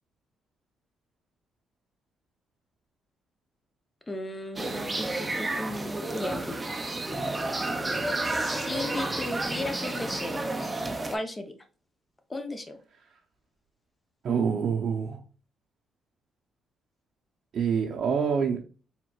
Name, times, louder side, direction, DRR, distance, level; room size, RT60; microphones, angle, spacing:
voice 1, 4.1-6.6 8.2-10.4 11.1-11.5 12.3-12.8, left 2 dB, 20° left, 6 dB, 0.8 m, -35 dB
sound 1, 4.6-11.2, right 2 dB, 20° right, 0.6 m, -31 dB
voice 2, 14.2-15.2 17.5-18.6, right 6 dB, 60° right, 1 dB, 0.7 m, -26 dB
4.4 x 3.6 x 2.3 m, 0.37 s
cardioid pair, 90°, 0 cm